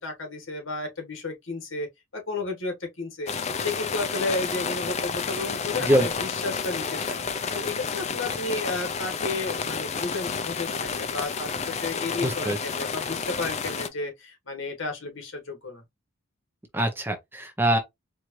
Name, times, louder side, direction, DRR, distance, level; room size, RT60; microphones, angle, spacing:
voice 1, 0.0-1.9 2.1-3.3 3.6-7.2 7.5-15.8, left 3 dB, 65° left, 1.6 m, -32 dB
sound 1, 3.3-13.9, left 5 dB, 30° left, 0.4 m, -30 dB
voice 2, 12.2-12.6 16.7-17.8, right 1 dB, 10° right, 0.6 m, -23 dB
4.5 x 2.5 x 3.1 m
head